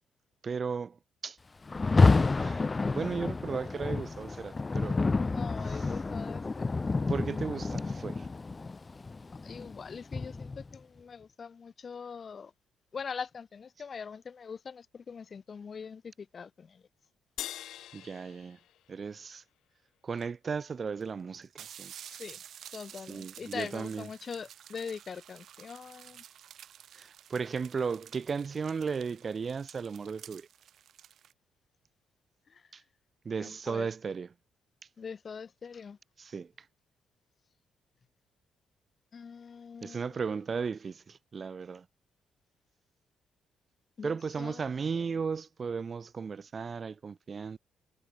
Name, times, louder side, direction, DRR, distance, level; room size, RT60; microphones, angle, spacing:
voice 1, 0.4-1.0 1.2-1.4 2.4-2.6 2.9-5.0 5.6-5.9 7.1-8.3 17.9-18.6 18.9-19.4 20.0-21.9 23.1-24.1 26.9-30.5 32.7-32.8 33.2-34.3 36.2-36.5 39.8-41.8 44.0-47.6, right 5 dB, 40° right, 1.3 m, -35 dB
Rain, 1.7-10.8, left 3 dB, 25° left, 0.5 m, -29 dB
voice 2, 5.2-6.4 9.4-12.5 12.9-16.8 22.0-22.4 22.7-26.2 32.5-32.6 33.4-33.9 35.0-36.0 39.1-40.2 44.0-45.1, left 6 dB, 45° left, 1.0 m, -42 dB
sound 1, 17.4-20.0, left 13 dB, 80° left, 2.0 m, -44 dB
sound 2, 20.2-20.3 21.0-21.1 21.3-31.3, right 10 dB, 65° right, 0.7 m, -51 dB
cardioid pair, 90°, 0 cm